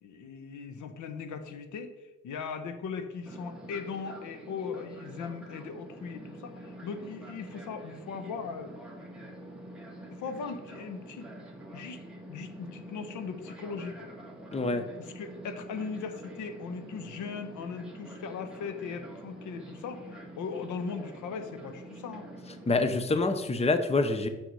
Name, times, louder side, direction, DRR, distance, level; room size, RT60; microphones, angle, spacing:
voice 1, 0.0-8.7 10.1-11.3 11.7-12.0 12.3-14.1 15.1-22.3, left 5 dB, 75° left, 8 dB, 1.0 m, -39 dB
Fixed-wing aircraft airplane, 3.3-23.0, right 1 dB, 5° right, 2.1 m, -46 dB
voice 2, 14.5-14.8 22.7-24.3, left 3 dB, 20° left, 8 dB, 0.8 m, -26 dB
6.6 x 6.1 x 5.6 m, 1.1 s
cardioid pair, 90°, 30 cm